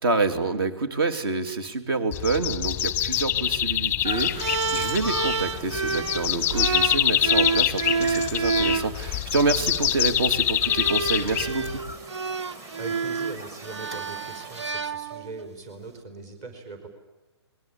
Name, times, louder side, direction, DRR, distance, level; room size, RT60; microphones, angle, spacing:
voice 1, 0.0-11.8, right 3 dB, 55° right, 9 dB, 3.0 m, -27 dB
sound 1, 2.1-11.9, left 12 dB, 15° left, 0.8 m, -25 dB
sound 2, 4.0-14.7, right 2 dB, 20° right, 1.8 m, -42 dB
sound 3, 4.4-8.9 9.9-10.1 10.6-15.5, right 5 dB, 80° right, 1.5 m, -29 dB
voice 2, 12.8-16.9, right 3 dB, 35° right, 6 dB, 4.8 m, -40 dB
28.0 x 20.5 x 8.7 m, 1.1 s
hypercardioid pair, 145°, 15 cm